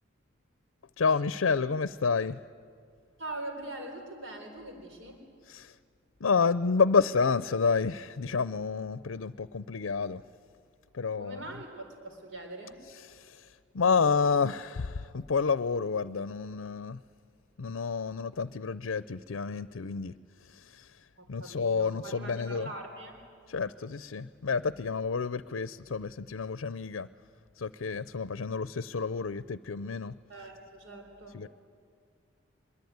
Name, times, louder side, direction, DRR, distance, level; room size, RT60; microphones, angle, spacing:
voice 1, 1.0-2.4 5.5-5.8 6.2-10.2 10.9-11.4 13.0-17.0 17.6-20.1 20.4-21.0 21.3-22.7 23.5-27.1 27.6-30.2 31.3-31.5, left 5 dB, 85° left, 16 dB, 0.6 m, -29 dB
voice 2, 3.2-5.2 11.2-12.8 21.2-23.2 30.3-31.4, right 1 dB, 70° right, 3 dB, 3.9 m, -42 dB
24.0 x 22.5 x 9.5 m, 2.2 s
head